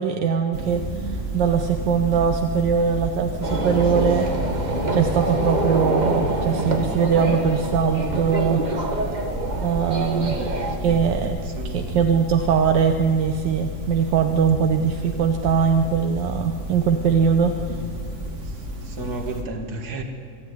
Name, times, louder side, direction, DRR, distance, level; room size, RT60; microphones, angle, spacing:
voice 1, 0.0-4.3 4.9-8.7 9.6-11.4 11.7-17.8, right 6 dB, 80° right, 1.6 m, -21 dB
sound 1, 0.5-19.4, right 1 dB, 40° right, 2.6 m, -32 dB
sound 2, 3.4-10.8, right 2 dB, 25° right, 1.7 m, -25 dB
voice 2, 11.6-12.1 19.0-20.0, right 2 dB, 60° right, 2.5 m, -32 dB
25.0 x 13.0 x 9.6 m
omnidirectional pair, 1.9 m